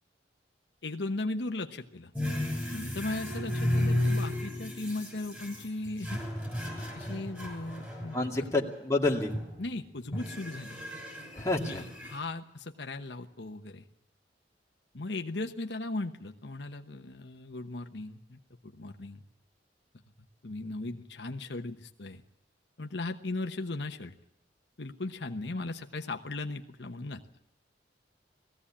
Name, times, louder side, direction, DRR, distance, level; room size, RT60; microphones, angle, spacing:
voice 1, 0.8-2.1 2.7-6.2 6.9-8.5 9.6-10.8 11.7-13.8 14.9-19.2 20.4-22.2 22.8-24.1 24.8-27.2, left 2 dB, 70° left, 5 dB, 1.1 m, -37 dB
sound 1, 2.2-8.6 9.1-9.7 10.1-12.2, left 1 dB, 10° right, 6.2 m, -34 dB
voice 2, 8.1-9.3 11.3-11.8, left 2 dB, 15° left, -1 dB, 2.4 m, -28 dB
19.5 x 15.5 x 8.7 m, 0.87 s
head